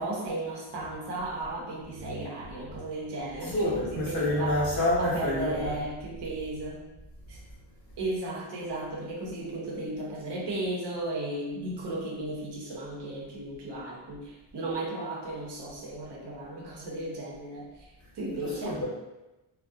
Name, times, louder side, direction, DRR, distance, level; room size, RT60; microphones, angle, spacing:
voice 1, 0.0-4.6 5.0-6.9 7.3-7.4 8.0-18.8, right 2 dB, 60° right, -4 dB, 0.7 m, -35 dB
voice 2, 3.4-5.8 18.3-18.9, left 1 dB, 40° left, -7 dB, 0.7 m, -28 dB
2.3 x 2.0 x 2.6 m, 1.0 s
wide cardioid pair, 160°, 47 cm